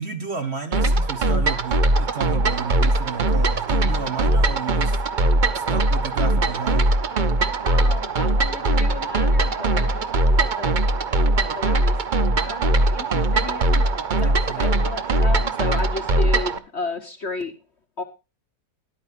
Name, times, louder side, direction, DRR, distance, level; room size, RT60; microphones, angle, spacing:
voice 1, 0.0-5.0 5.5-6.9 14.2-14.7, right 5 dB, 40° right, 6 dB, 1.3 m, -32 dB
sound 1, 0.7-16.6, right 2 dB, 65° right, 0.4 m, -20 dB
voice 2, 7.7-10.7 11.2-12.0 12.4-13.8 14.2-17.5 18.0-18.1, left 3 dB, 45° left, 6 dB, 1.1 m, -33 dB
13.5 x 11.0 x 2.6 m, 0.29 s
omnidirectional pair, 2.0 m